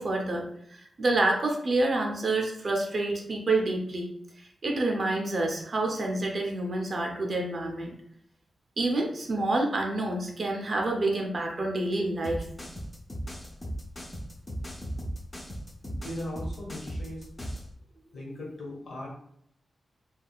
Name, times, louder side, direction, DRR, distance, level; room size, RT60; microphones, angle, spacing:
voice 1, 0.0-4.1 4.6-8.0 8.8-12.5, right 2 dB, 40° right, 1 dB, 0.5 m, -28 dB
sound 1, 12.2-17.7, equal, 20° left, 0.4 m, -37 dB
voice 2, 15.8-17.3 18.1-19.1, left 1 dB, 60° left, -3 dB, 1.1 m, -38 dB
3.5 x 2.3 x 2.2 m, 0.69 s
wide cardioid pair, 155°, 0 cm